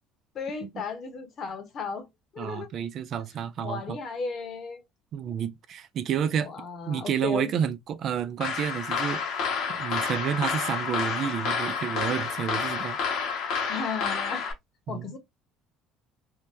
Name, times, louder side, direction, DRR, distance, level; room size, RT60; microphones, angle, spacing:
voice 1, 0.3-2.1 2.3-2.7 3.6-4.8 5.3-5.4 6.4-7.5 13.7-14.5 14.9-15.2, left 5 dB, 45° left, 1.0 m, -35 dB
voice 2, 2.4-4.0 5.1-6.5 6.9-9.4 9.7-13.0 14.9-15.1, right 8 dB, 50° right, 0.4 m, -30 dB
sound 1, 8.4-14.5, left 5 dB, 65° left, 1.0 m, -29 dB
2.8 x 2.1 x 3.3 m
cardioid pair, 110°, 0 cm